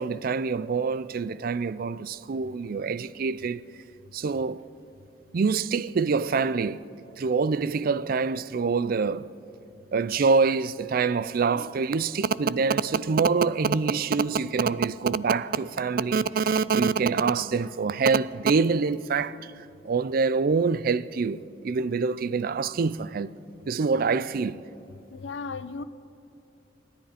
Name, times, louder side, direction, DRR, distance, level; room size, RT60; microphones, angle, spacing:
voice 1, 0.0-3.6 4.1-4.7 5.3-6.8 7.2-9.3 9.9-23.3 23.7-24.6, right 5 dB, 55° right, 0.4 m, -25 dB
voice 2, 25.1-25.8, left 4 dB, 85° left, 0.6 m, -35 dB
27.0 x 10.5 x 5.0 m
head